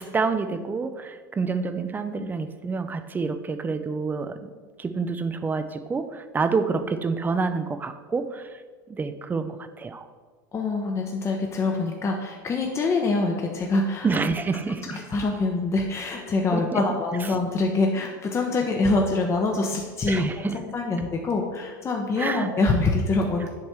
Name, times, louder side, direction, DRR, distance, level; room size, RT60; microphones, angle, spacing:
voice 1, 0.0-4.5 4.8-8.6 8.9-10.1 14.0-15.0 16.5-16.8 17.3-17.4 20.1-20.6 22.2-22.5, right 4 dB, 15° right, 10 dB, 0.5 m, -28 dB
voice 2, 10.5-14.1 14.9-20.2 20.7-23.5, left 3 dB, 25° left, 1 dB, 0.8 m, -25 dB
7.3 x 3.3 x 5.9 m, 1.5 s
hypercardioid pair, 95°, 11 cm